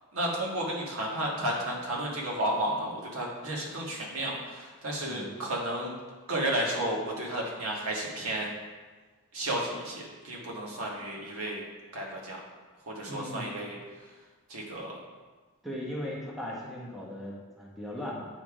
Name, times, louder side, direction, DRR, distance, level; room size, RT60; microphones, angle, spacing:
voice 1, 0.1-5.9 6.3-8.5 9.3-11.6 11.9-12.4 12.9-13.8 14.5-15.0, right 1 dB, 70° right, -2 dB, 1.6 m, -32 dB
voice 2, 13.1-13.5 15.6-18.3, left 1 dB, ahead, -5 dB, 1.3 m, -38 dB
9.0 x 3.7 x 4.8 m, 1.4 s
head